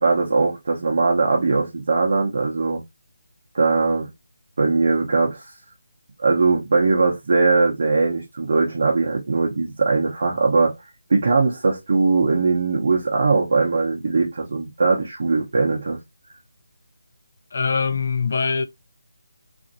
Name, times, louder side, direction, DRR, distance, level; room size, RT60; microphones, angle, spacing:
voice 1, 0.0-2.8 3.5-4.1 4.6-5.4 6.2-10.7 11.1-16.0, right 3 dB, 55° right, 0.7 m, -20 dB
voice 2, 17.5-18.6, left 5 dB, 50° left, 0.4 m, -22 dB
2.8 x 2.5 x 2.5 m
figure-of-eight pair, 170°, 0 cm